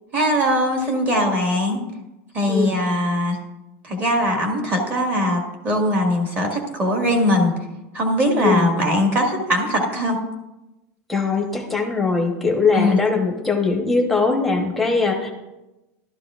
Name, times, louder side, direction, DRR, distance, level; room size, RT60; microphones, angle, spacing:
voice 1, 0.1-1.8 2.3-3.4 3.8-7.5 7.9-10.2 12.7-13.0, equal, 20° right, 1 dB, 1.8 m, -21 dB
voice 2, 8.4-8.7 11.1-15.3, left 4 dB, ahead, 0 dB, 1.0 m, -21 dB
13.0 x 12.5 x 2.5 m, 0.98 s
supercardioid pair, 180°, 8 cm